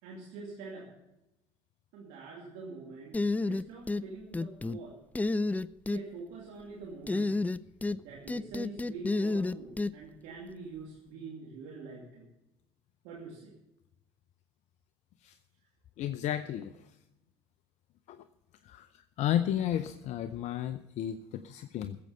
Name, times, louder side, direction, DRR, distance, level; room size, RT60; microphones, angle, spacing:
voice 1, 0.0-0.9 1.9-3.2 3.4-5.0 5.9-7.4 8.0-12.3 13.0-13.5, right 4 dB, 70° right, -2 dB, 2.4 m, -45 dB
sound 1, 3.1-4.0 4.3-4.8 5.1-6.0 7.1-8.0 8.3-9.9, left 3 dB, 10° left, 0.4 m, -30 dB
voice 2, 16.0-16.7 18.1-18.2 18.6-18.9 19.2-22.0, left 11 dB, 60° left, 11 dB, 0.6 m, -32 dB
15.0 x 7.7 x 6.7 m, 0.92 s
hypercardioid pair, 65°, 13 cm